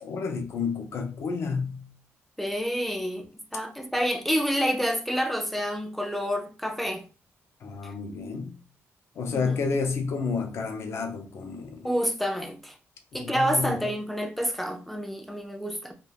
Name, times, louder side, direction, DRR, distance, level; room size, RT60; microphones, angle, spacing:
voice 1, 0.0-1.9 7.6-8.6 9.2-11.9 13.1-13.9, left 5 dB, 60° left, 0.5 m, -30 dB
voice 2, 2.4-3.3 3.5-7.0 7.8-7.9 9.3-9.6 11.8-12.7 13.1-15.9, equal, 5° left, 0.3 m, -28 dB
2.3 x 2.3 x 3.3 m
wide cardioid pair, 145°, 5 cm